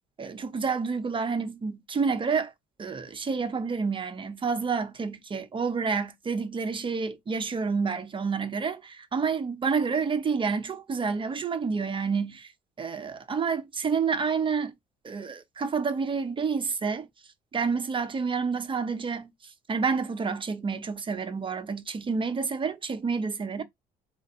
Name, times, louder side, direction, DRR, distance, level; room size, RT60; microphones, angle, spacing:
voice 1, 0.2-2.5 2.8-12.5 12.8-14.7 15.0-17.1 17.5-23.6, right 5 dB, 30° right, 0.9 m, -29 dB
4.0 x 2.5 x 4.3 m
cardioid pair, 110°, 17 cm